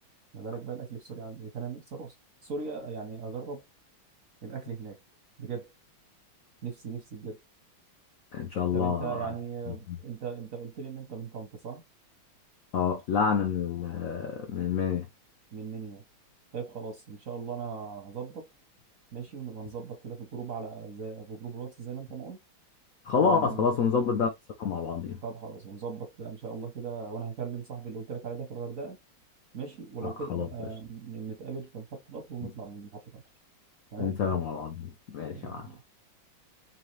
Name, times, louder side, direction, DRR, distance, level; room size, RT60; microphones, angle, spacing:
voice 1, 0.3-2.1 2.4-3.6 4.4-5.0 5.4-5.7 6.6-7.4 8.7-11.8 15.5-16.0 16.5-18.5 19.1-22.4 23.2-23.7 25.2-29.0 29.5-33.2 33.9-34.2 35.3-35.8, right 6 dB, 60° right, 0.9 m, -38 dB
voice 2, 8.3-9.2 9.9-10.0 12.7-15.1 23.1-24.3 24.6-25.2 30.0-30.5 34.0-35.7, left 6 dB, 85° left, 0.7 m, -28 dB
4.1 x 2.9 x 3.1 m
omnidirectional pair, 2.3 m